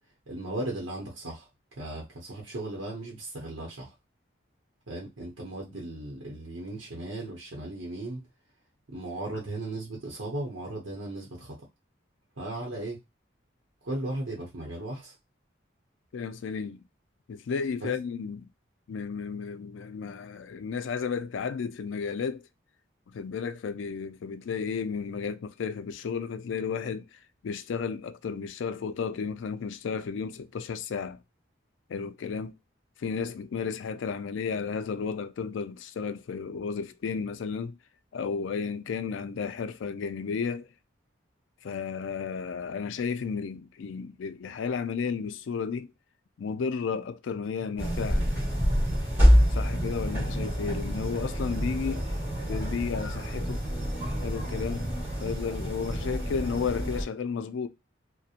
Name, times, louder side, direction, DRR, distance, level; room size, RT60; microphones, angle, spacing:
voice 1, 0.3-1.5 1.8-3.9 4.9-8.3 8.9-11.6 12.4-13.0 13.8-15.1 17.8-18.0, right 2 dB, 85° right, 0.8 m, -36 dB
voice 2, 16.1-16.8 17.3-18.5 18.9-22.4 23.1-31.2 31.9-32.5 33.0-37.7 38.1-40.7 41.6-45.9 46.4-48.2 49.5-52.1 52.5-53.6 54.2-54.9 55.2-57.7, left 6 dB, 75° left, 0.3 m, -33 dB
sound 1, 47.8-57.0, equal, 10° right, 1.2 m, -27 dB
2.8 x 2.1 x 2.4 m
head